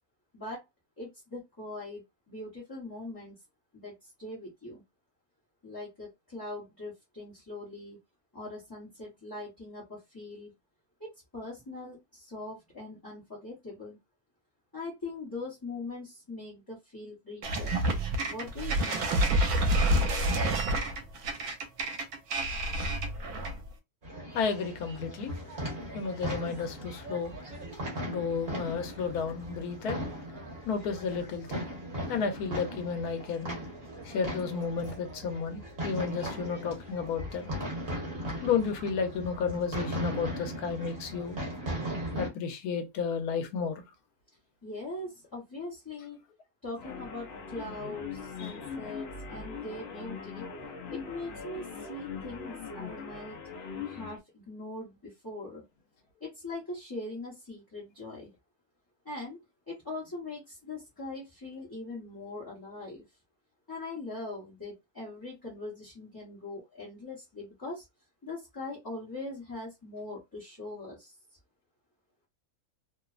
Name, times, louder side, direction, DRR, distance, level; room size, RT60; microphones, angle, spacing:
voice 1, 1.0-3.4 3.7-4.8 5.6-8.0 8.3-10.5 11.0-14.0 14.7-17.7 18.3-19.1 44.6-46.2 46.6-50.5 50.9-53.4 53.9-55.6 56.2-58.3 59.0-59.4 59.7-63.1 63.7-67.8 68.2-71.1, left 2 dB, 20° left, 0.8 m, -41 dB
sound 1, 17.4-23.7, right 1 dB, 80° right, 1.1 m, -28 dB
sound 2, 24.0-42.3, equal, 45° right, 1.3 m, -38 dB
voice 2, 24.3-25.3 25.9-27.4 28.1-30.1 30.7-31.7 32.1-33.5 34.0-37.5 38.4-41.4 42.2-43.8 48.4-48.5, left 6 dB, 80° left, 1.2 m, -32 dB
sound 3, 46.8-54.2, left 5 dB, 60° left, 0.7 m, -41 dB
3.0 x 2.0 x 2.3 m
omnidirectional pair, 1.6 m